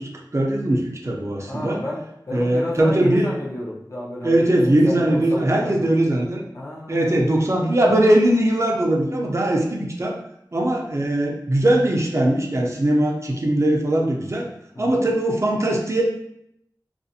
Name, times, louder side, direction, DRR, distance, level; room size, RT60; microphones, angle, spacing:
voice 1, 0.0-1.8 2.3-3.3 4.2-6.4 6.9-10.1 10.5-14.5 14.8-16.0, right 1 dB, 40° right, -1 dB, 0.5 m, -20 dB
voice 2, 1.5-5.9 6.5-7.2 14.7-15.0, left 1 dB, 45° left, -4 dB, 0.5 m, -32 dB
2.4 x 2.0 x 2.7 m, 0.76 s
wide cardioid pair, 45°, 8 cm